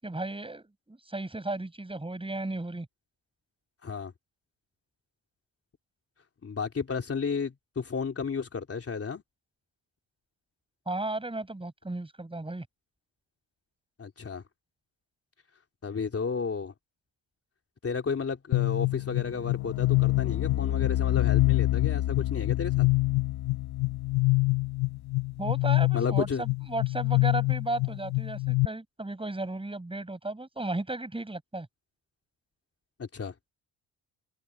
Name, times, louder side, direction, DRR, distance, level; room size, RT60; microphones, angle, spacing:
voice 1, 0.0-2.9 10.9-12.7 25.4-31.7, right 2 dB, 15° right, 7.9 m, -34 dB
voice 2, 3.8-4.1 6.4-9.2 14.0-14.4 15.8-16.7 17.8-22.9 25.9-26.4 33.0-33.3, left 5 dB, 35° left, 3.5 m, -32 dB
sound 1, 18.5-28.7, left 19 dB, 75° left, 1.0 m, -26 dB
open air
cardioid pair, 90°, 39 cm